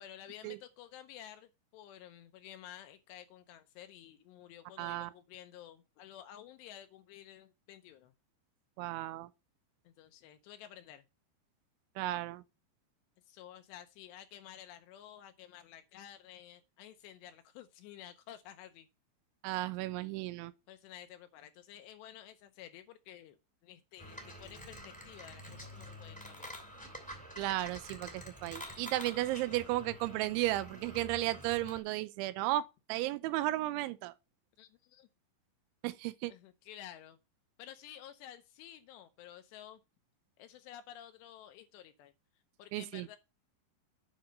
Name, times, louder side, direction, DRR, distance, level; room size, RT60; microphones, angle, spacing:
voice 1, 0.0-8.1 9.9-11.0 13.3-18.9 20.7-23.4 23.6-26.5 34.6-35.1 36.3-37.2 37.6-39.8 40.4-42.1 42.6-43.2, left 11 dB, 80° left, 2.6 m, -52 dB
voice 2, 4.8-5.1 8.8-9.3 12.0-12.4 19.4-20.5 27.4-32.6 32.9-34.1 35.8-36.3 42.7-43.1, right 16 dB, 90° right, 3.0 m, -34 dB
sound 1, 24.0-31.8, equal, 5° left, 1.0 m, -48 dB
9.3 x 4.9 x 5.2 m
omnidirectional pair, 5.3 m